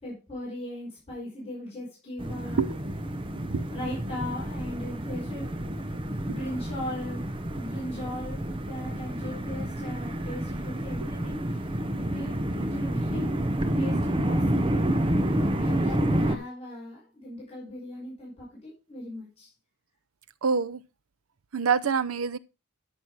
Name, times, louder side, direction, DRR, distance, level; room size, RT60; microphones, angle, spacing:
voice 1, 0.0-2.6 3.7-5.5 6.2-7.2 7.5-11.6 12.0-13.3 13.7-14.7 15.6-19.5, left 1 dB, 30° left, 4.5 m, -38 dB
sound 1, 2.2-16.4, right 1 dB, 25° right, 0.9 m, -29 dB
voice 2, 20.4-20.8 21.5-22.4, right 5 dB, 75° right, 0.6 m, -26 dB
13.0 x 6.3 x 4.7 m
head